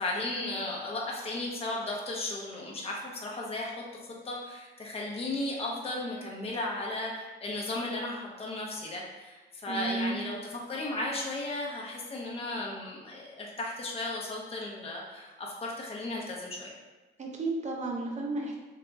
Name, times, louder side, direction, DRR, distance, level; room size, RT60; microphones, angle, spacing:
voice 1, 0.0-3.8 4.2-16.7, left 2 dB, 30° left, -3 dB, 0.8 m, -35 dB
voice 2, 9.7-10.2 17.2-18.6, right 2 dB, 35° right, 0 dB, 0.7 m, -33 dB
3.8 x 2.9 x 2.3 m, 1.2 s
cardioid pair, 90°, 20 cm